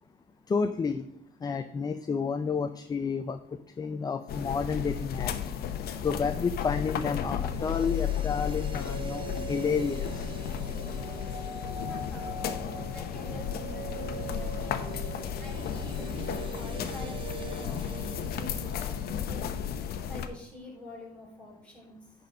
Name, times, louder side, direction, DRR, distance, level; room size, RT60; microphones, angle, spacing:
voice 1, 0.5-1.1 1.4-3.4 3.8-5.3 6.0-10.4, left 5 dB, 25° left, 10 dB, 0.5 m, -30 dB
sound 1, 4.3-20.3, left 8 dB, 65° left, 0.9 m, -34 dB
sound 2, 7.4-19.5 19.8-19.9, right 5 dB, 30° right, 0.9 m, -43 dB
voice 2, 11.8-12.3 12.9-14.9 15.4-19.5 20.1-22.1, left 1 dB, 5° left, -3 dB, 3.6 m, -47 dB
9.9 x 4.2 x 6.5 m, 0.75 s
cardioid pair, 110°, 17 cm